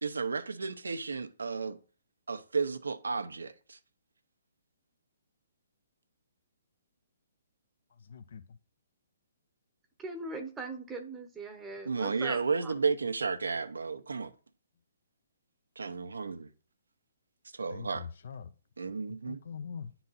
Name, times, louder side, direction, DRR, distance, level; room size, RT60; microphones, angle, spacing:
voice 1, 0.0-1.8 2.3-3.8 11.9-14.3 15.8-16.5 17.5-18.1 18.8-19.4, right 5 dB, 85° right, 0.7 m, -33 dB
voice 2, 7.9-8.6 17.7-18.5 19.1-19.9, left 6 dB, 65° left, 0.6 m, -43 dB
voice 3, 10.0-12.7, right 3 dB, 15° right, 0.8 m, -40 dB
9.4 x 3.9 x 4.0 m
hypercardioid pair, 140°, 0 cm